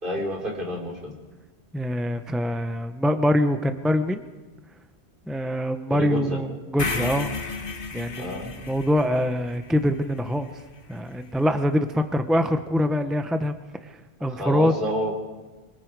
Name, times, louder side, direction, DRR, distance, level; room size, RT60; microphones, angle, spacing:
voice 1, 0.0-1.2 5.9-6.4 8.2-8.5 14.3-15.1, equal, 55° right, -1 dB, 3.9 m, -29 dB
voice 2, 1.7-4.2 5.3-7.4 7.9-10.5 10.9-13.5 13.8-13.9 14.2-14.7, equal, ahead, 8 dB, 0.7 m, -24 dB
sound 1, 6.8-10.9, left 4 dB, 55° left, 1.5 m, -34 dB
25.0 x 23.5 x 4.7 m, 1.3 s
omnidirectional pair, 1.1 m